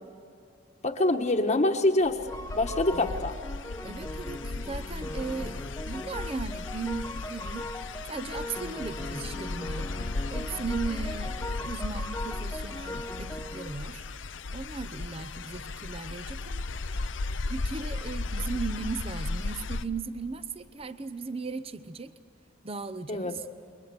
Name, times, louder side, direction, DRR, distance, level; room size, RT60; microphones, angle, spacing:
voice 1, 0.8-2.2 2.5-3.3 23.1-23.3, left 2 dB, 35° left, 3 dB, 1.3 m, -25 dB
sound 1, 2.0-19.8, left 3 dB, 80° left, 0.8 m, -36 dB
sound 2, 2.3-13.8, left 1 dB, 15° left, 1.0 m, -40 dB
voice 2, 3.8-9.9 10.3-14.0 14.5-17.0 17.5-22.1 22.6-23.5, right 4 dB, 30° right, 12 dB, 0.7 m, -37 dB
29.0 x 22.5 x 6.9 m, 2.5 s
head